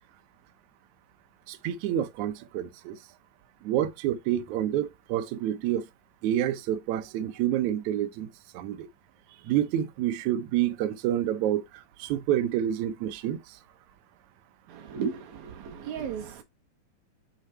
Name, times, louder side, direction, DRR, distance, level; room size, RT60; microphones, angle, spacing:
voice 1, 1.5-3.0 3.6-5.9 6.2-8.9 9.4-13.6, right 11 dB, 85° right, 1.6 m, -28 dB
voice 2, 14.7-16.4, right 6 dB, 65° right, 2.2 m, -35 dB
6.7 x 3.8 x 4.4 m
omnidirectional pair, 4.4 m